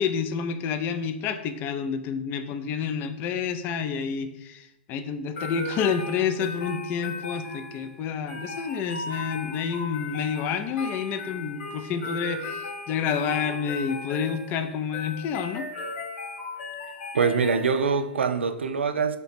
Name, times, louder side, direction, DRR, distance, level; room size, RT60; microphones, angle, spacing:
voice 1, 0.0-15.7, left 6 dB, 30° left, 0.3 m, -29 dB
sound 1, 5.3-18.1, left 3 dB, 65° left, 1.3 m, -37 dB
voice 2, 17.1-19.2, right 5 dB, 90° right, 0.4 m, -24 dB
3.3 x 2.9 x 4.1 m
hypercardioid pair, 120°, 6 cm